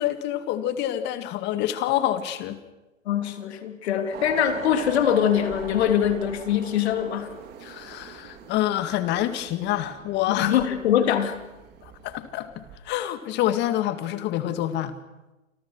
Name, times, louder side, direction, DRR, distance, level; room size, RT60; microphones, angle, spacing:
voice 1, 0.0-2.6 7.6-10.6 11.8-14.9, left 12 dB, 25° left, 10 dB, 2.1 m, -27 dB
voice 2, 3.1-7.3 10.4-11.4, left 9 dB, 50° left, 7 dB, 3.5 m, -23 dB
sound 1, 4.1-12.8, right 7 dB, 25° right, 3.4 m, -42 dB
28.5 x 25.5 x 6.3 m, 1.1 s
hypercardioid pair, 125°, 40 cm